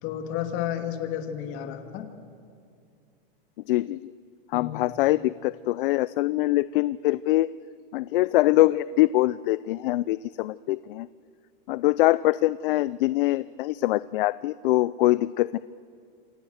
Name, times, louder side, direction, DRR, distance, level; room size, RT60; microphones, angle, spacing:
voice 1, 0.0-2.1 4.5-4.8, left 10 dB, 45° left, 5 dB, 2.8 m, -32 dB
voice 2, 3.7-4.1 4.5-7.5 7.9-11.1 11.7-15.6, left 17 dB, 65° left, 17 dB, 0.5 m, -23 dB
27.5 x 27.5 x 6.5 m, 2.4 s
supercardioid pair, 145°, 29 cm